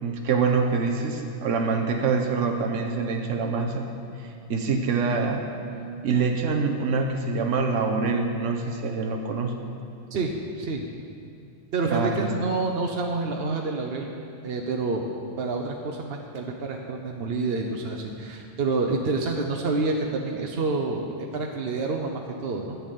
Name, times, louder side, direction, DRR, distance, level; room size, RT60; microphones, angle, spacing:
voice 1, 0.0-3.9 4.2-5.4 6.0-9.5 11.9-12.3, right 4 dB, 85° right, 4 dB, 1.2 m, -25 dB
voice 2, 11.7-14.1 14.4-15.1 15.4-22.8, right 3 dB, 60° right, 1 dB, 1.0 m, -28 dB
11.0 x 7.2 x 8.3 m, 2.5 s
omnidirectional pair, 1.2 m